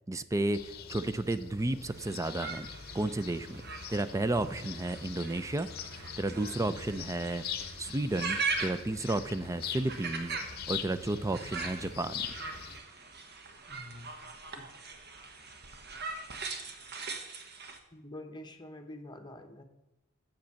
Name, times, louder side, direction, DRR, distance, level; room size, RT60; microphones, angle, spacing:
voice 1, 0.1-0.6 0.9-2.7 2.9-3.6 3.9-7.4 7.8-10.4 10.7-12.3, right 2 dB, 15° right, 12 dB, 0.4 m, -32 dB
sound 1, 0.5-12.8, left 7 dB, 50° left, 0.8 m, -43 dB
sound 2, 1.9-17.8, right 4 dB, 55° right, 1.2 m, -41 dB
voice 2, 13.7-14.1 14.6-14.7 17.9-19.6, left 1 dB, 20° left, 5 dB, 1.0 m, -46 dB
7.8 x 7.3 x 7.0 m, 0.95 s
head